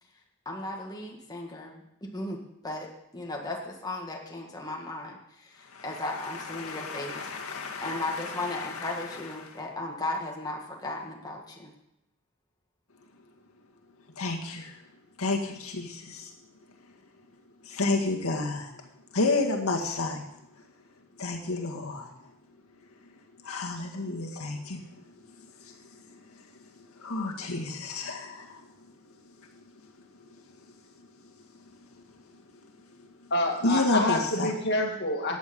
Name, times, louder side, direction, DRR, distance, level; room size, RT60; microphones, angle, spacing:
voice 1, 0.5-1.8 2.1-2.9 3.1-7.2 7.8-11.7, left 2 dB, 20° left, -1 dB, 1.8 m, -36 dB
voice 2, 6.5-8.6 14.2-14.7 15.2-16.3 17.7-18.7 19.1-20.2 21.2-22.1 23.4-24.8 27.0-28.6 33.6-34.5, left 2 dB, 85° left, 0 dB, 1.9 m, -30 dB
voice 3, 33.3-35.4, left 1 dB, 50° left, 2 dB, 2.2 m, -27 dB
14.5 x 9.5 x 5.3 m, 0.83 s
head